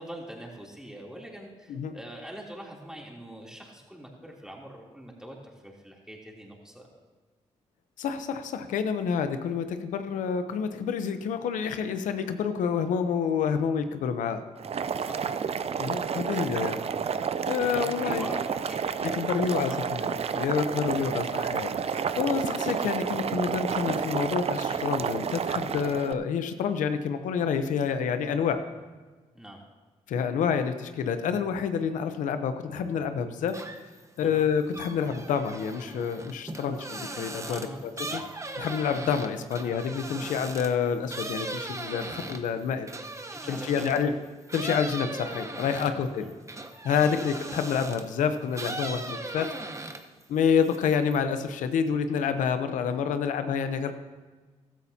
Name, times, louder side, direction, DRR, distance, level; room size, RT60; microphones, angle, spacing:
voice 1, 0.0-5.4 5.6-6.9 15.0-15.3 16.4-16.7 17.6-19.8 29.3-29.6 34.2-34.4 37.4-37.8 38.1-38.3 43.3-44.2 45.7-46.3 46.9-47.2, right 1 dB, 5° right, -2 dB, 3.1 m, -43 dB
voice 2, 8.0-14.4 15.8-16.8 17.5-18.3 19.0-28.6 30.1-33.6 34.2-37.6 38.1-38.2 38.6-42.9 43.5-44.1 44.5-46.2 46.8-49.5 50.3-53.9, left 7 dB, 90° left, 9 dB, 0.8 m, -28 dB
Boiling, 14.6-26.1, right 6 dB, 55° right, 0.5 m, -30 dB
sound 1, 33.5-34.0 34.4-44.1 44.5-48.1 48.5-50.2 50.5-51.2, right 2 dB, 25° right, 1.0 m, -38 dB
15.5 x 13.0 x 2.8 m, 1.3 s
cardioid pair, 60°, 13 cm